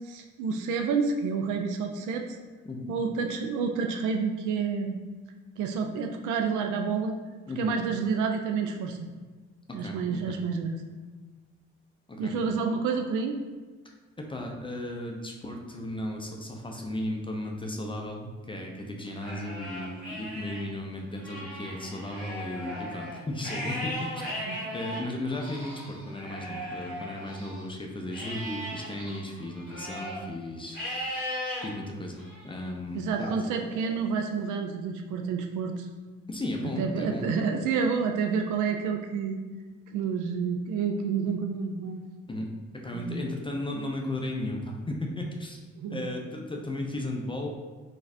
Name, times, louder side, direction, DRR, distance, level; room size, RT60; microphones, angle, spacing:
voice 1, 0.0-2.3 2.9-5.0 5.6-7.2 7.6-9.0 9.7-10.8 12.2-13.4 24.4-24.7 32.9-35.9 36.6-39.4 39.9-42.0 42.9-43.2 45.8-46.0, right 5 dB, 55° right, 4 dB, 0.4 m, -29 dB
voice 2, 9.7-10.4 12.1-12.3 14.2-24.2 24.7-31.3 31.6-33.4 36.3-37.3 42.3-42.5 42.7-45.6 45.9-47.5, left 1 dB, 15° left, 1 dB, 0.5 m, -35 dB
Livestock farm animals working animals, 19.1-20.6 21.1-27.6 28.1-30.2 30.7-31.6 32.2-32.6 33.2-34.3, equal, 90° right, 1.3 m, -38 dB
3.8 x 2.7 x 2.5 m, 1.4 s
figure-of-eight pair, 40°, 37 cm